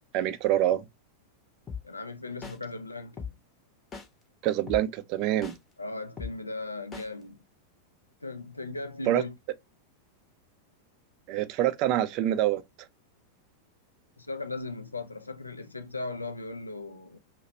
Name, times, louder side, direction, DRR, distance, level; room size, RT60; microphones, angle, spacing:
voice 1, 0.1-0.8 4.4-5.5 9.1-9.2 11.3-12.6, right 13 dB, 40° right, 0.4 m, -25 dB
sound 1, 1.7-1.8 2.4-2.6 3.2-3.3 3.9-4.1 4.7-4.8 5.4-5.6 6.2-6.3 6.9-7.1, left 5 dB, 20° left, 0.8 m, -37 dB
voice 2, 1.8-3.4 5.8-7.4 8.2-9.3 14.2-17.2, left 3 dB, 80° left, 0.4 m, -37 dB
2.8 x 2.2 x 4.0 m
figure-of-eight pair, 90°, 0 cm